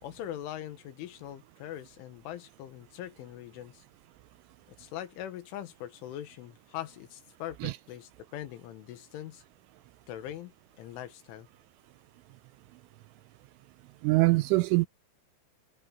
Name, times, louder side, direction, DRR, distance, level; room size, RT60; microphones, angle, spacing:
voice 1, 0.0-3.8 4.7-9.4 10.1-11.5, left 12 dB, 75° left, 3.8 m, -42 dB
voice 2, 14.0-14.9, right 21 dB, 80° right, 2.9 m, -23 dB
omnidirectional pair, 5.7 m